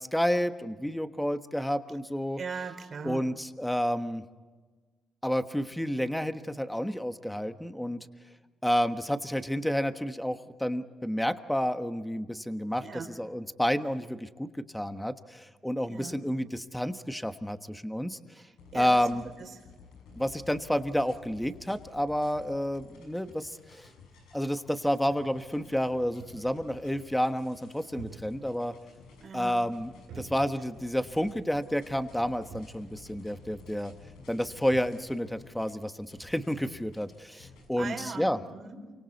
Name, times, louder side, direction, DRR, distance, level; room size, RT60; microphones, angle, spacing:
voice 1, 0.0-2.4 3.0-4.2 5.2-8.1 8.6-14.5 14.7-18.2 18.7-19.2 20.2-23.9 24.3-28.7 29.3-33.9 34.3-38.4, equal, 5° left, 9 dB, 1.3 m, -30 dB
voice 2, 2.4-3.2 12.8-13.1 15.9-16.2 18.7-19.1 19.4-19.5 29.2-29.6 37.8-38.9, right 5 dB, 45° right, 4 dB, 4.0 m, -39 dB
sound 1, 18.6-37.9, left 4 dB, 90° left, 6.3 m, -53 dB
sound 2, 24.2-24.3 24.9-25.0 25.3-26.7 27.8-28.6 28.9-29.0 30.1-30.9 31.2-31.3 32.2-32.3 32.5-32.8 34.2-34.3 34.4-35.1, right 6 dB, 85° right, 3.1 m, -48 dB
28.5 x 25.5 x 4.1 m, 1.4 s
cardioid pair, 90°, 0 cm